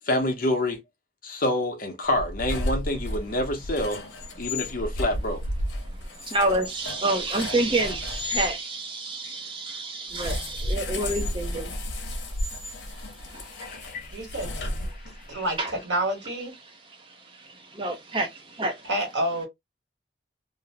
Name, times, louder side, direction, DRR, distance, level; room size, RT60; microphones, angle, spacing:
voice 1, 0.1-0.8 1.2-4.0 4.4-5.4 13.5-14.2 15.3-15.4, left 1 dB, 50° left, 0.7 m, -27 dB
sound 1, 2.1-8.5 10.1-15.3, left 1 dB, 90° left, 0.7 m, -33 dB
voice 2, 6.2-11.7 12.9-13.8 15.6-15.7 17.0-18.9, right 2 dB, 30° right, 0.5 m, -29 dB
voice 3, 14.1-14.9 15.3-16.6 18.8-19.5, right 1 dB, 80° right, 1.3 m, -29 dB
2.6 x 2.0 x 2.7 m
head